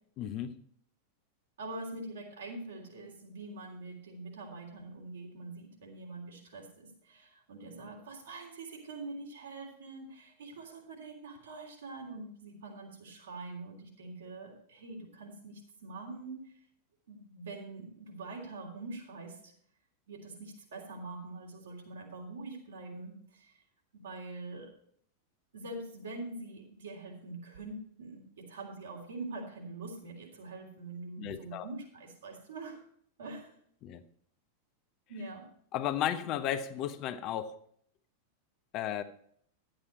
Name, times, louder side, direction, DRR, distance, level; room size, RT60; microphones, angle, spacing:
voice 1, 0.2-0.5 31.2-31.7 33.8-34.0 35.7-37.6 38.7-39.0, left 10 dB, 40° left, 0.7 m, -34 dB
voice 2, 1.6-16.5 17.1-19.5 20.1-23.6 23.9-24.7 25.5-32.8 33.2-33.6 35.1-35.5, right 2 dB, 65° right, 3.4 m, -44 dB
11.5 x 8.9 x 4.3 m
figure-of-eight pair, 90°, 0 cm